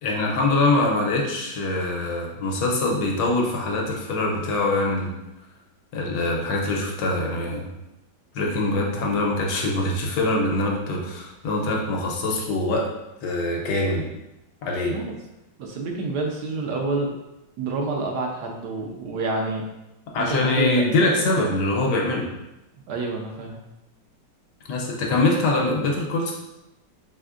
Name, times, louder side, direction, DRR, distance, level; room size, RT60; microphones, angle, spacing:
voice 1, 0.0-5.1 5.9-7.7 8.3-12.9 13.2-14.1 14.6-15.0 20.1-22.2 24.7-26.3, left 2 dB, 70° left, 0 dB, 1.2 m, -23 dB
voice 2, 8.6-8.9 14.9-15.1 15.6-17.1 17.6-19.6 20.2-20.8 22.9-23.6, right 3 dB, 70° right, 1 dB, 1.1 m, -28 dB
5.0 x 3.4 x 2.4 m, 0.94 s
omnidirectional pair, 2.0 m